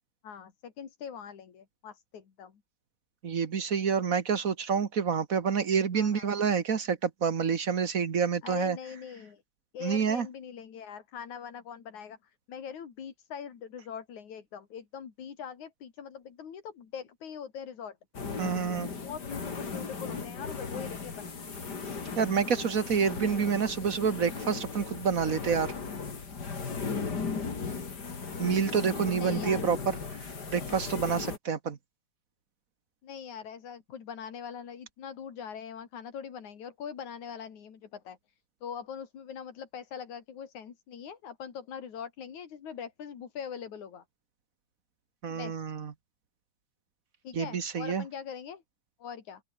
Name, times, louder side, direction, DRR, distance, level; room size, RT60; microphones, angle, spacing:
voice 1, 0.2-2.6 5.9-6.3 8.4-9.4 9.7-18.0 19.0-21.3 29.1-29.6 33.0-38.2 38.6-44.0 45.3-45.6 47.2-48.6 49.0-49.4, left 7 dB, 70° left, 4.0 m, -42 dB
voice 2, 3.2-8.8 9.8-10.3 18.4-18.9 22.2-25.7 28.4-30.0 30.5-31.8 45.2-45.9 47.3-48.0, right 6 dB, 55° right, 0.9 m, -28 dB
sound 1, 18.1-31.4, left 5 dB, 35° left, 3.0 m, -37 dB
open air
omnidirectional pair, 3.6 m